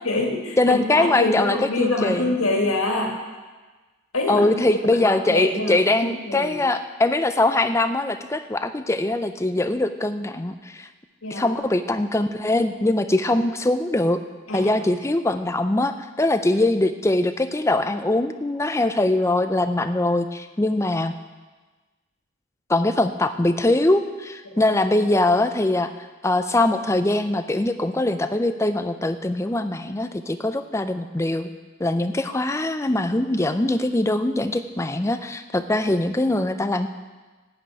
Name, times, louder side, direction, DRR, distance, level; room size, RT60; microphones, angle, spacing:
voice 1, 0.0-3.2 4.1-4.7 4.9-6.6 11.2-11.5 14.5-14.7 24.5-24.6, left 2 dB, 90° left, 1 dB, 2.1 m, -25 dB
voice 2, 0.6-2.3 4.3-10.9 11.3-14.2 14.5-21.1 22.7-25.9 26.2-31.5 31.8-36.9, left 2 dB, 15° left, 9 dB, 0.4 m, -22 dB
11.0 x 6.3 x 8.8 m, 1.3 s
head